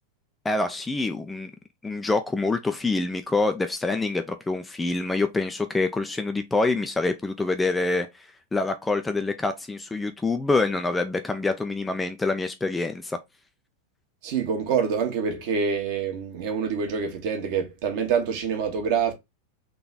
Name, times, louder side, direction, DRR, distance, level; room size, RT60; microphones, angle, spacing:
voice 1, 0.4-1.5 1.8-13.2, left 3 dB, 10° left, 0.5 m, -26 dB
voice 2, 14.2-19.1, right 6 dB, 50° right, 1.5 m, -26 dB
3.8 x 3.3 x 4.0 m
figure-of-eight pair, 90°, 0 cm